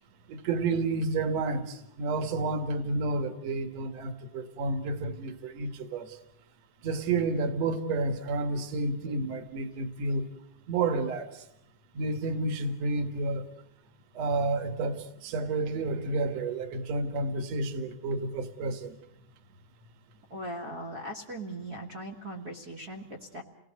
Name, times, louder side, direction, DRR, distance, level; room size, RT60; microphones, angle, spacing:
voice 1, 0.3-6.2 6.8-10.3 10.7-11.4 11.9-13.4 14.1-19.0, right 3 dB, 60° right, 9 dB, 2.9 m, -30 dB
voice 2, 20.3-23.4, right 1 dB, 35° right, -3 dB, 1.9 m, -39 dB
29.5 x 19.5 x 8.0 m, 0.78 s
omnidirectional pair, 3.6 m